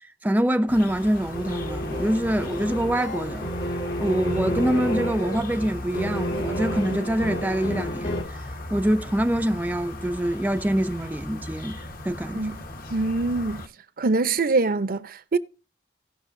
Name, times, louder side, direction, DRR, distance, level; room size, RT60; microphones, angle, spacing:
voice 1, 0.2-3.5 4.0-8.4 8.7-12.5, right 1 dB, 10° right, 0.4 m, -25 dB
sound 1, 0.7-13.7, left 1 dB, 55° left, 1.2 m, -37 dB
sound 2, 1.3-8.2, equal, 70° left, 2.0 m, -31 dB
voice 2, 12.9-13.7 14.0-15.4, right 3 dB, 55° right, 0.7 m, -24 dB
17.5 x 5.9 x 2.6 m
head